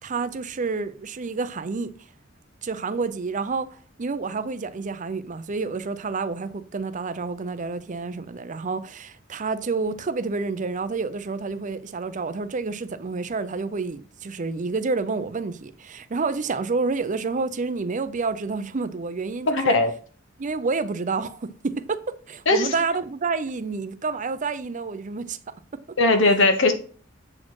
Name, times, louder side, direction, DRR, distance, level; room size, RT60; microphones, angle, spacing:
voice 1, 0.0-1.9 2.6-19.8 20.4-25.8, right 4 dB, 40° right, 0.5 m, -29 dB
voice 2, 19.5-19.9 22.5-22.7 26.0-26.7, left 2 dB, 65° left, 1.2 m, -18 dB
7.5 x 4.2 x 4.7 m
head